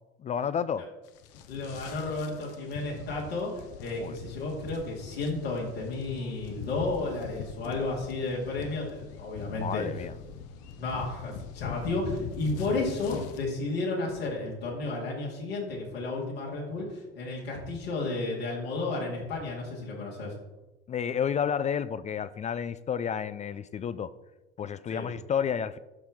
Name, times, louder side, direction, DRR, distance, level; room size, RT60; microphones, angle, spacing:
voice 1, 0.2-0.9 4.0-4.2 9.5-10.1 20.9-24.1 24.6-25.8, left 7 dB, 25° left, 15 dB, 0.4 m, -31 dB
sound 1, 1.1-13.4, left 7 dB, 55° left, 0.9 m, -42 dB
voice 2, 1.5-9.9 10.8-20.4 24.9-25.1, left 2 dB, 75° left, -4 dB, 2.4 m, -32 dB
12.5 x 5.9 x 3.7 m, 1.1 s
figure-of-eight pair, 70°, 31 cm